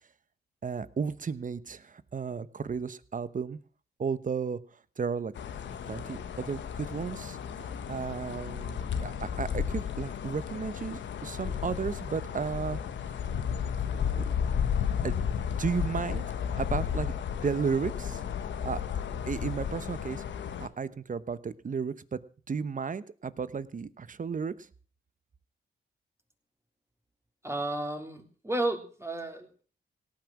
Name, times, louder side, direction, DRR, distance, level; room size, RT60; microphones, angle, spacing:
voice 1, 0.6-3.6 4.0-4.6 5.0-5.3 5.9-12.8 14.2-14.3 15.0-15.1 15.6-16.2 16.5-18.2 18.6-18.8 19.3-20.2 20.6-22.2 22.5-24.7, right 5 dB, 45° right, 15 dB, 1.0 m, -34 dB
sound 1, 5.4-20.7, left 8 dB, 80° left, 1.3 m, -33 dB
voice 2, 27.4-29.6, right 2 dB, 15° right, 3 dB, 3.4 m, -33 dB
17.5 x 9.4 x 6.1 m, 0.42 s
cardioid pair, 65°, 19 cm